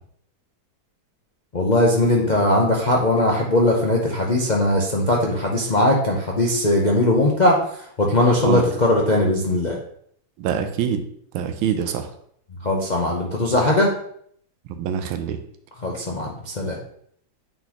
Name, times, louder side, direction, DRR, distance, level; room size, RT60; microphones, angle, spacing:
voice 1, 1.5-7.6 8.0-9.8 12.6-13.9 15.8-16.8, left 1 dB, 60° left, -2 dB, 0.4 m, -19 dB
voice 2, 10.4-11.0 11.3-12.1 14.8-15.4, right 8 dB, 90° right, 7 dB, 1.5 m, -24 dB
8.9 x 4.0 x 3.0 m, 0.65 s
omnidirectional pair, 2.2 m